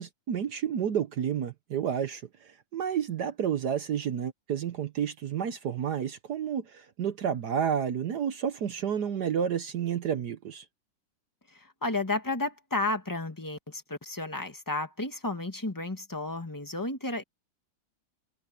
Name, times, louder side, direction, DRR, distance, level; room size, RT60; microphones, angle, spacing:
voice 1, 0.0-10.6, right 8 dB, 65° right, 1.4 m, -30 dB
voice 2, 11.5-17.2, left 2 dB, 10° left, 1.6 m, -32 dB
omnidirectional pair, 2.0 m